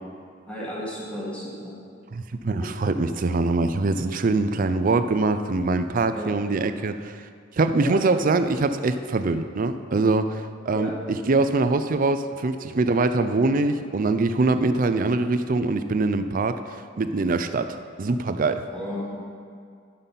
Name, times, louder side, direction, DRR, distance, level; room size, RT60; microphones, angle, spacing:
voice 1, 0.5-1.8 6.1-6.3 7.8-8.0 10.7-10.9 18.7-19.2, equal, 5° left, -7 dB, 1.7 m, -33 dB
voice 2, 2.1-7.3 7.5-18.7, right 3 dB, 45° right, 9 dB, 0.5 m, -23 dB
11.5 x 5.4 x 5.7 m, 2.2 s
head